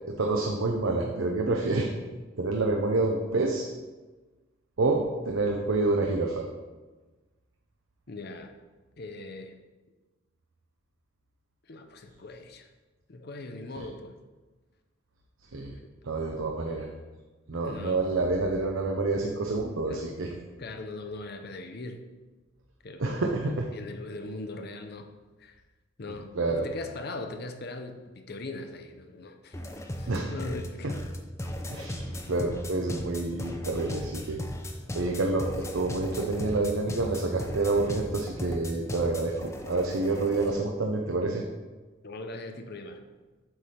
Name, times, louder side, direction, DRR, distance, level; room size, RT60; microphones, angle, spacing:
voice 1, 0.1-1.9 2.4-3.7 4.8-6.4 13.8-13.9 15.5-15.8 16.0-16.9 17.5-20.3 23.0-23.7 26.4-26.7 30.1-30.3 30.8-30.9 31.7-34.4 34.9-41.4, right 3 dB, 85° right, 1 dB, 0.7 m, -28 dB
voice 2, 8.1-8.6 9.0-9.6 11.7-12.7 13.1-14.2 15.5-15.9 17.6-18.0 19.9-20.1 20.6-22.0 22.8-23.2 23.7-25.1 25.4-25.6 26.0-29.6 30.0-30.9 42.0-43.0, left 2 dB, 55° left, 7 dB, 0.7 m, -40 dB
sound 1, 29.5-40.6, left 1 dB, 15° left, 0.6 m, -36 dB
7.8 x 3.4 x 5.7 m, 1.2 s
head